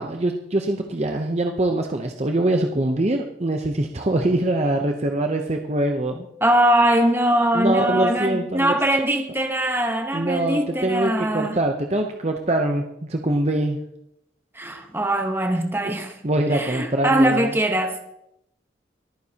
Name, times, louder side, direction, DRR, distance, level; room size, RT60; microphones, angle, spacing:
voice 1, 0.0-6.3 7.5-8.7 10.1-13.8 15.8-15.9 16.2-17.5, right 1 dB, 35° right, 0.7 m, -23 dB
voice 2, 6.4-11.6 14.5-16.2 16.5-18.0, right 1 dB, 10° right, 1.0 m, -21 dB
24.0 x 9.3 x 2.9 m
head